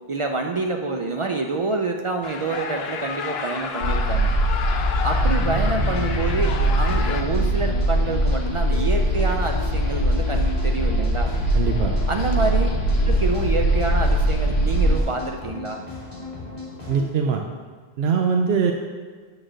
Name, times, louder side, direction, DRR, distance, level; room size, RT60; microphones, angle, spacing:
voice 1, 0.1-4.3 5.0-11.3 12.1-12.7 13.1-15.8, right 3 dB, 55° right, 3 dB, 0.3 m, -27 dB
sound 1, 2.2-7.2, left 5 dB, 80° left, 0.9 m, -31 dB
sound 2, 3.8-15.0, equal, 60° left, 1.0 m, -21 dB
sound 3, 5.7-17.0, left 1 dB, 30° left, 2.1 m, -36 dB
voice 2, 11.5-11.9 16.9-17.4 18.0-18.7, right 6 dB, 80° right, 2 dB, 0.8 m, -21 dB
8.6 x 3.2 x 6.2 m, 1.5 s
omnidirectional pair, 1.0 m